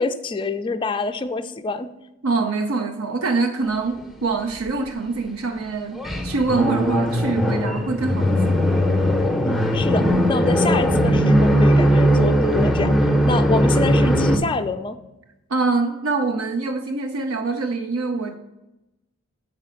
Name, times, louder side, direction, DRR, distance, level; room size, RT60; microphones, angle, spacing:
voice 1, 0.0-1.9 9.4-12.9 13.2-15.0, left 3 dB, 20° left, 8 dB, 0.3 m, -26 dB
voice 2, 2.2-8.6 15.5-18.3, right 3 dB, 70° right, 5 dB, 0.6 m, -24 dB
sound 1, 6.0-14.4, equal, ahead, 0.7 m, -19 dB
7.8 x 5.0 x 5.6 m, 0.94 s
head